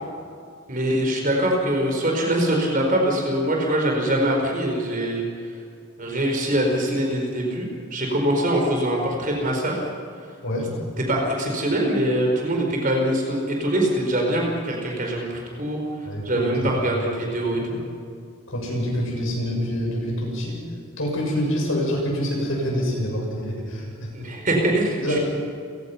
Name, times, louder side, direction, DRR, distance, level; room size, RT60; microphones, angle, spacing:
voice 1, 0.7-5.2 6.0-9.8 11.1-15.8 16.2-17.6 24.1-25.0, right 1 dB, 40° right, 0 dB, 4.4 m, -23 dB
voice 2, 16.0-17.8 18.5-20.6 21.0-24.1 25.0-25.2, equal, 70° left, -1 dB, 7.0 m, -27 dB
29.5 x 16.5 x 5.8 m, 2.3 s
head